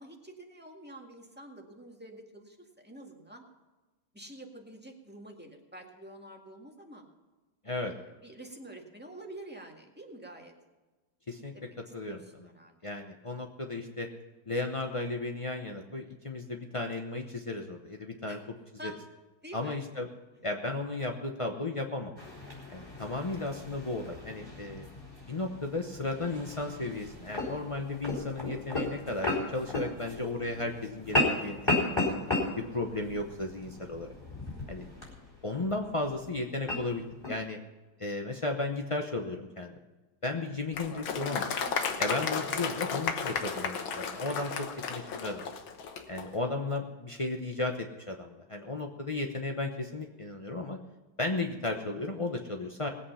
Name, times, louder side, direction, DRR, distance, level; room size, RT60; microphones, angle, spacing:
voice 1, 0.0-3.4 4.1-7.0 7.6-10.5 11.5-11.8 12.0-12.7 18.3-18.4 18.8-19.0 19.4-19.8 22.4-22.6 34.5-34.8 41.7-42.0, right 1 dB, 5° right, 0 dB, 1.8 m, -48 dB
voice 2, 11.9-12.5 12.8-14.1 14.5-18.4 18.8-18.9 19.5-20.1 20.4-22.1 22.7-24.9 25.3-32.1 32.6-34.1 34.7-34.8 35.4-37.6 38.0-39.8 40.2-41.4 42.0-45.4 46.1-50.8 51.2-52.9, left 2 dB, 50° left, 3 dB, 0.3 m, -34 dB
sound 1, 22.2-37.4, left 2 dB, 10° left, 4.2 m, -35 dB
Applause, 40.7-46.3, left 6 dB, 70° left, 1.9 m, -33 dB
19.5 x 8.5 x 5.6 m, 1.2 s
omnidirectional pair, 2.3 m